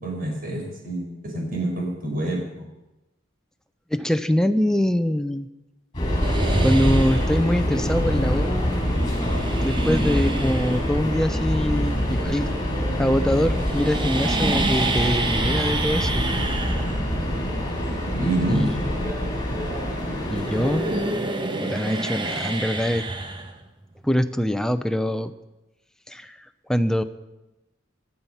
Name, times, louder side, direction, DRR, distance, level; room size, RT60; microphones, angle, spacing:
voice 1, 0.0-2.7 18.1-18.7, right 1 dB, 50° right, -1 dB, 5.3 m, -27 dB
voice 2, 3.9-5.5 6.6-8.8 9.6-12.5 13.0-16.3 18.5-18.7 20.3-20.9 21.6-23.1 24.0-25.3 26.1-26.4 26.7-27.0, equal, 5° left, 9 dB, 0.7 m, -24 dB
Subway metro underground, 5.9-21.3, equal, 25° left, 6.7 m, -25 dB
sound 1, 6.2-7.5 8.7-13.0 13.2-19.9 20.2-24.0, right 2 dB, 25° right, 1.2 m, -28 dB
17.5 x 12.0 x 5.6 m, 0.99 s
head